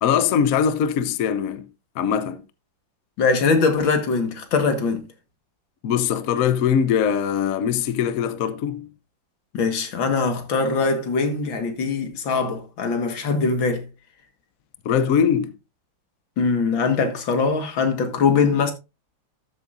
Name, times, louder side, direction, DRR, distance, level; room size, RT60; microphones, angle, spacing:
voice 1, 0.0-1.7 2.0-2.4 5.8-8.9 14.8-15.5, left 8 dB, 60° left, 0.9 m, -21 dB
voice 2, 3.2-5.0 9.5-13.9 16.4-18.7, left 4 dB, 80° left, 2.4 m, -22 dB
13.0 x 7.5 x 2.5 m
omnidirectional pair, 2.1 m